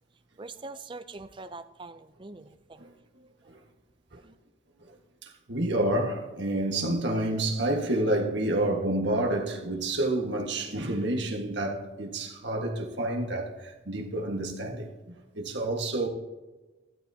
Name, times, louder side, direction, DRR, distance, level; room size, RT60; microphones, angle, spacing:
voice 1, 0.4-2.8 4.2-4.4, right 3 dB, 25° right, 0.5 m, -43 dB
voice 2, 5.2-16.1, right 1 dB, 60° right, 1.6 m, -29 dB
13.5 x 13.0 x 2.8 m
head